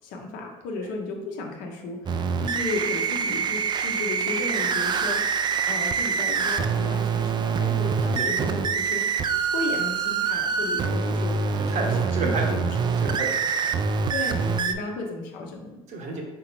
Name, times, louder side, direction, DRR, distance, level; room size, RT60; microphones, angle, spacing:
voice 1, 0.0-9.0 9.4-11.4 11.8-11.9 12.2-12.6 12.9-13.2 14.1-15.8, left 3 dB, 75° left, 2 dB, 0.9 m, -34 dB
sound 1, 2.1-14.7, right 6 dB, 30° right, 0.3 m, -25 dB
voice 2, 11.5-13.8 15.9-16.2, right 3 dB, 55° right, 1 dB, 1.1 m, -32 dB
4.0 x 3.8 x 3.0 m, 1.1 s
supercardioid pair, 85°, 14 cm